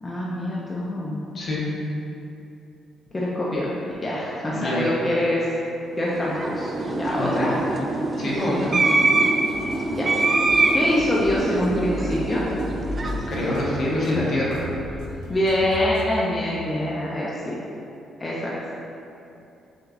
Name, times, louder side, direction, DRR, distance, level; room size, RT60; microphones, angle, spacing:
voice 1, 0.0-1.2 3.1-3.7 4.0-5.5 6.0-7.5 9.9-10.1 10.7-12.4 15.3-17.6 18.2-18.5, left 1 dB, 25° left, -6 dB, 0.5 m, -25 dB
voice 2, 1.3-1.7 4.5-4.9 7.1-7.5 8.2-8.7 13.3-14.7, left 1 dB, 55° left, -5 dB, 0.9 m, -25 dB
sound 1, 6.0-14.5, right 2 dB, 35° right, 0.3 m, -24 dB
sound 2, 9.5-16.1, left 1 dB, 85° left, 0.4 m, -36 dB
6.0 x 2.3 x 2.5 m, 2.8 s
cardioid pair, 90°, 0 cm